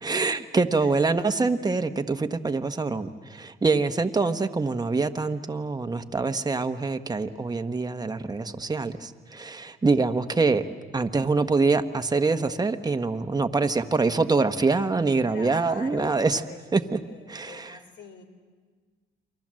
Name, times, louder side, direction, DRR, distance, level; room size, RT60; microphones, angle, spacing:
voice 1, 0.0-10.6 10.9-16.4 16.7-17.0 17.3-17.8, right 3 dB, 20° right, 7 dB, 1.3 m, -25 dB
voice 2, 0.8-1.3 15.2-16.6 17.1-18.2, left 4 dB, 65° left, 6 dB, 3.7 m, -44 dB
29.0 x 24.0 x 7.7 m, 1.5 s
cardioid pair, 90°, 20 cm